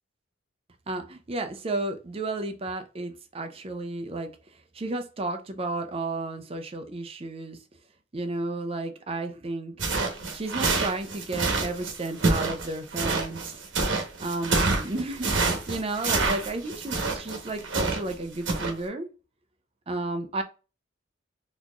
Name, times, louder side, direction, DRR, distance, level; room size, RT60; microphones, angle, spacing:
voice 1, 0.9-4.3 4.7-7.6 8.1-13.6 14.2-19.1 19.9-20.4, right 2 dB, 30° right, 7 dB, 0.5 m, -33 dB
sound 1, 9.8-18.1 18.5-18.7, right 3 dB, 70° right, 1.1 m, -27 dB
4.0 x 2.9 x 2.4 m, 0.32 s
head